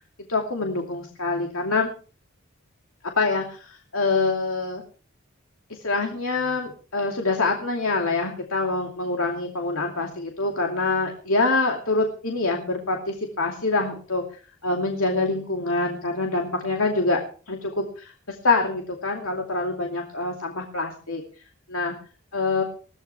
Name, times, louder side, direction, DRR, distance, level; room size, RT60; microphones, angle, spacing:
voice 1, 0.3-1.9 3.2-4.8 5.7-14.2 14.6-17.2 17.5-21.2 21.7-22.0 22.3-22.6, left 3 dB, 80° left, 2 dB, 2.6 m, -25 dB
21.5 x 15.5 x 3.4 m, 0.38 s
head